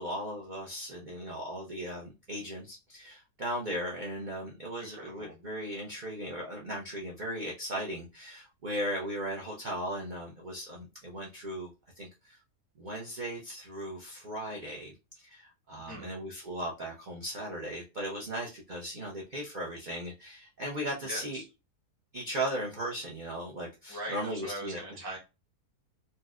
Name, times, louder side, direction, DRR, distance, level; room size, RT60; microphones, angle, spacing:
voice 1, 0.0-11.7 12.0-12.4 12.8-21.4 22.1-24.8, equal, 75° right, 0.4 m, -37 dB
voice 2, 4.8-5.3 15.8-16.1 21.0-21.4 23.9-25.2, right 1 dB, 35° left, 0.3 m, -41 dB
4.1 x 2.1 x 2.3 m
omnidirectional pair, 1.8 m